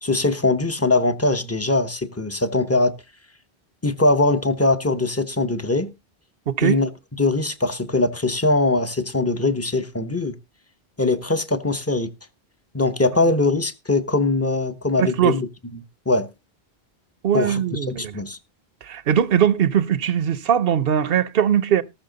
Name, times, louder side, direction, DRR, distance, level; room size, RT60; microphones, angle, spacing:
voice 1, 0.0-2.9 3.8-5.9 6.6-6.9 7.2-10.4 11.0-12.1 12.7-15.5 15.7-16.3 17.3-18.4, left 2 dB, 15° left, 0.9 m, -21 dB
voice 2, 6.5-6.8 15.0-15.4 17.2-18.2 18.8-21.8, right 9 dB, 65° right, 1.0 m, -20 dB
19.0 x 6.3 x 4.0 m
omnidirectional pair, 1.0 m